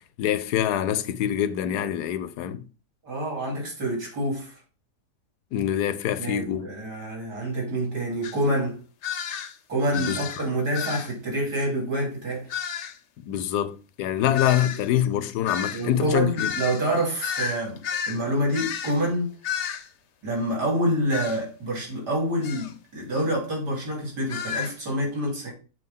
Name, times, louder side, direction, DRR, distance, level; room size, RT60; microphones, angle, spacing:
voice 1, 0.2-2.7 5.5-6.7 9.9-10.2 13.3-16.5, left 11 dB, 80° left, 1.1 m, -25 dB
voice 2, 3.0-4.6 6.2-8.8 9.7-12.5 14.2-14.3 14.7-14.8 15.7-19.3 20.2-25.5, right 1 dB, 85° right, 3.5 m, -27 dB
sound 1, 8.2-8.4 9.0-9.5 9.9-10.4 10.7-11.1 12.5-13.0 14.3-18.2 18.5-19.0 19.4-19.9 21.1-21.4 22.4-22.7 24.3-24.7, left 8 dB, 60° left, 0.8 m, -31 dB
7.7 x 3.0 x 5.4 m
omnidirectional pair, 1.8 m